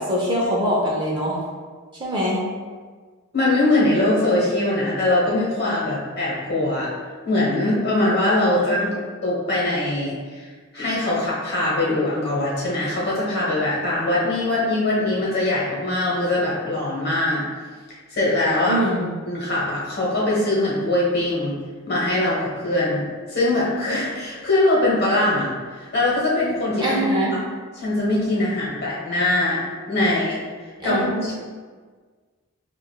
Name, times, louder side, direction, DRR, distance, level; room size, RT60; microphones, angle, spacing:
voice 1, 0.0-1.4 2.0-2.4 8.5-8.9 18.7-19.1 26.8-27.3 30.8-31.2, equal, 20° right, -5 dB, 0.7 m, -23 dB
voice 2, 3.3-6.9 7.2-17.4 17.9-18.8 19.2-21.6 21.9-27.0 27.8-29.6 29.9-30.4 30.8-31.3, left 2 dB, 50° left, -6 dB, 1.2 m, -22 dB
6.7 x 2.4 x 2.3 m, 1.5 s
head